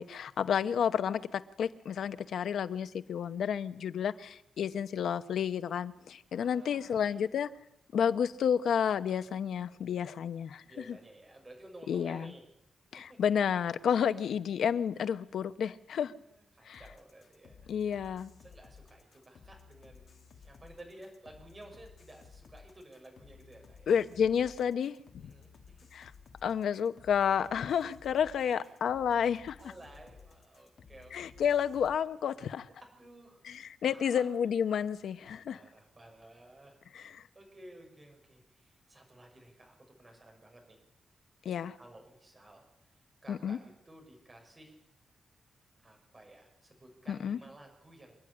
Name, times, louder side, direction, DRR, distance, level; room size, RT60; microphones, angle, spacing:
voice 1, 0.0-7.5 7.9-10.6 11.9-12.3 12.9-16.1 16.7-16.8 17.7-18.3 23.9-25.0 25.2-25.3 25.9-26.1 26.4-29.6 31.1-32.7 33.4-35.6 36.9-37.0 41.4-41.8 43.3-43.6 47.1-47.4, left 8 dB, 80° left, 12 dB, 0.9 m, -30 dB
voice 2, 6.3-7.2 10.7-12.4 12.9-13.2 14.9-15.1 16.1-17.7 18.4-23.9 25.2-25.9 28.4-28.8 29.6-31.5 32.8-34.3 35.5-40.8 41.8-44.8 45.8-48.2, right 1 dB, 20° right, 1 dB, 5.8 m, -54 dB
sound 1, 16.7-32.0, left 6 dB, 50° left, 1.7 m, -56 dB
27.0 x 10.5 x 9.8 m, 0.82 s
wide cardioid pair, 180°, 0 cm